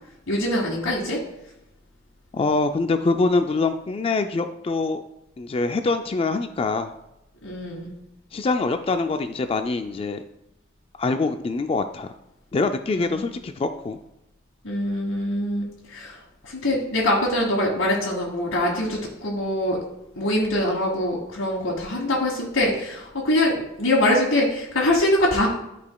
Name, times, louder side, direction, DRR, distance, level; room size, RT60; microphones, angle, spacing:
voice 1, 0.3-1.2 7.4-7.9 12.9-13.2 14.6-16.2 16.4-19.8 20.2-25.5, left 1 dB, 90° left, -5 dB, 1.5 m, -23 dB
voice 2, 2.3-5.0 5.4-6.9 8.3-10.2 11.0-12.1 12.5-14.0, left 3 dB, 30° left, 8 dB, 0.3 m, -24 dB
11.5 x 5.0 x 2.3 m, 0.87 s
head